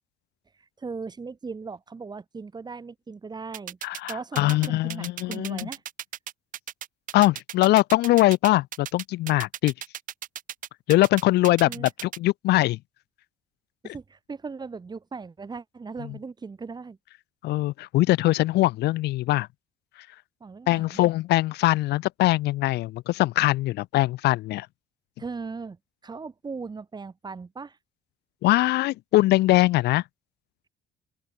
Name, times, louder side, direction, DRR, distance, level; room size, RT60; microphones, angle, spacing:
voice 1, 0.8-3.8 4.1-5.8 11.6-11.9 13.8-17.0 20.4-21.0 25.2-27.8, right 4 dB, 25° right, 2.7 m, -38 dB
sound 1, 3.5-12.2, right 11 dB, 50° right, 0.9 m, -36 dB
voice 2, 3.8-5.7 7.1-9.7 10.9-12.8 17.4-19.5 20.7-24.7 28.4-30.0, left 17 dB, 80° left, 1.2 m, -22 dB
open air
cardioid pair, 110°, 17 cm